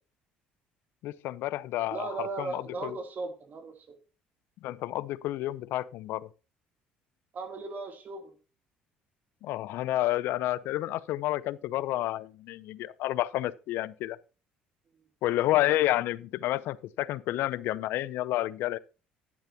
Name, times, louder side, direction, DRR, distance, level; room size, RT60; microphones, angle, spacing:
voice 1, 1.0-3.0 4.6-6.3 9.4-14.2 15.2-18.8, left 15 dB, 70° left, 0.5 m, -30 dB
voice 2, 1.9-3.9 7.3-8.3, right 4 dB, 50° right, 3.0 m, -37 dB
11.0 x 10.5 x 2.9 m
supercardioid pair, 70°, 4 cm